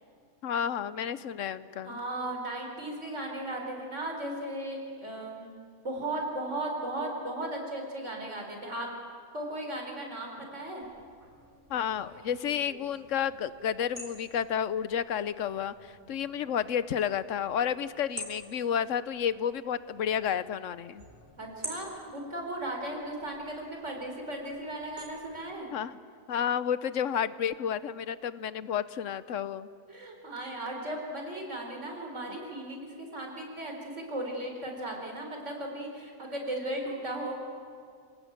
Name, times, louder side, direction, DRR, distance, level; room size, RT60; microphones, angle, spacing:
voice 1, 0.4-2.0 11.7-21.0 25.7-25.9 26.3-29.7 32.3-32.4, left 8 dB, 80° left, 15 dB, 1.1 m, -31 dB
voice 2, 1.8-5.5 5.8-8.9 9.3-10.8 21.4-25.7 29.9-37.3, right 1 dB, 70° right, 1 dB, 4.6 m, -36 dB
sound 1, 10.8-25.4, equal, 50° right, 4.7 m, -49 dB
27.5 x 18.0 x 8.9 m, 2.2 s
omnidirectional pair, 1.3 m